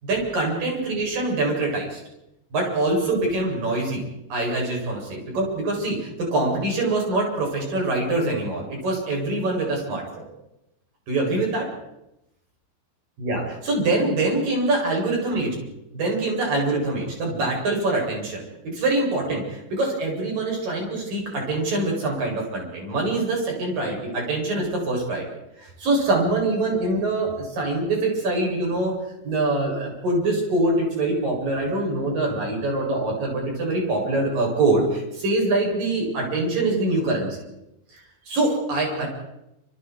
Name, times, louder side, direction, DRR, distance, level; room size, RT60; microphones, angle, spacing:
voice 1, 0.0-2.0 2.5-4.0 4.3-10.3 11.1-11.6 13.2-15.6 15.9-18.4 18.7-25.2 25.8-28.9 29.2-37.4 38.3-39.1, right 2 dB, 50° right, -1 dB, 9.5 m, -24 dB
28.5 x 28.0 x 4.8 m, 0.86 s
omnidirectional pair, 4.9 m